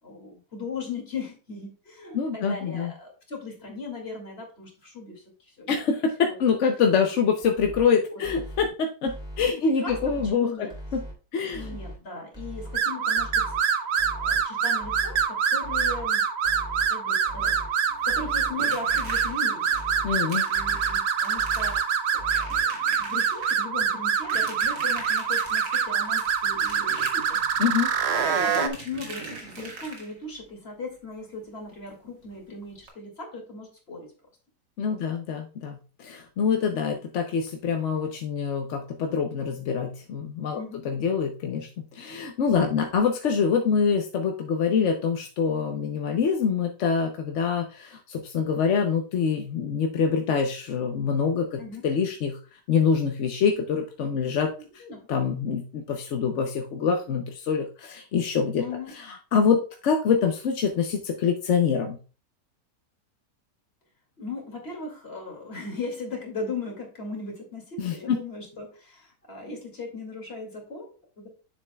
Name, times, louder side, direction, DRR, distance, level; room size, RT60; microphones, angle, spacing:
voice 1, 0.0-5.2 5.6-5.9 6.3-6.4 7.9-8.2 9.6-10.7 11.4-13.8 14.2-16.3 16.9-17.8 18.0-19.7 20.5-21.8 22.4-27.4 28.4-34.1 34.9-35.0 40.5-40.8 51.6-51.8 54.6-55.0 58.6-58.9 64.2-71.3, left 3 dB, 35° left, 1 dB, 2.5 m, -38 dB
voice 2, 2.1-2.9 5.7-10.5 10.9-11.0 11.3-11.7 20.0-20.5 27.6-27.9 34.8-52.4 52.7-54.8 55.1-58.6 59.3-62.0 67.8-68.2, left 6 dB, 60° left, 3 dB, 0.8 m, -25 dB
sound 1, 7.4-7.8 8.2-8.7 9.1-9.5 9.9-10.3 10.7-11.1 11.5-11.9 12.3-12.8 13.2-13.6 14.0-14.4 14.8-15.2 15.6-16.1 16.4-16.9 17.3-17.7 18.1-18.5 18.9-19.3 19.7-20.2 20.5-21.0 21.4-21.8 22.2-22.6 23.0-23.1 23.4-23.5 23.8-23.9 24.2-24.3 24.6-24.7 25.0-25.1 25.5-25.6 25.9-26.0 26.3-26.4 26.7-26.8, right 1 dB, 5° right, 2.7 m, -39 dB
sound 2, 12.7-28.7, right 7 dB, 55° right, 0.8 m, -25 dB
sound 3, 17.9-30.4 31.9-32.0 32.2-32.4 32.8-32.9, right 3 dB, 85° right, 2.3 m, -42 dB
9.0 x 7.1 x 2.3 m, 0.36 s
omnidirectional pair, 1.8 m